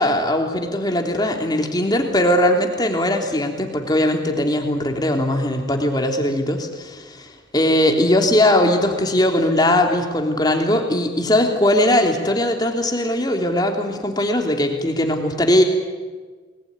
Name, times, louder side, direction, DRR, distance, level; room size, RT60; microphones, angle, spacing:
voice 1, 0.0-15.6, left 1 dB, 20° left, 3 dB, 3.2 m, -19 dB
29.5 x 20.5 x 9.7 m, 1.4 s
head